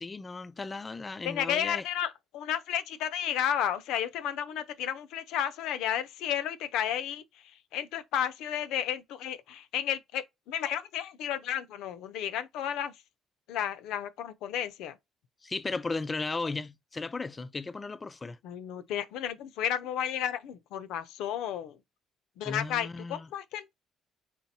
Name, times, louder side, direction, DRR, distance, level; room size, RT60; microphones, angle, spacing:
voice 1, 0.0-1.8 15.4-18.4 22.4-23.3, left 3 dB, 20° left, 0.4 m, -35 dB
voice 2, 1.2-12.9 13.5-15.0 18.4-21.8 22.4-23.7, left 10 dB, 85° left, 0.6 m, -32 dB
4.4 x 3.8 x 2.7 m
cardioid pair, 125°, 0 cm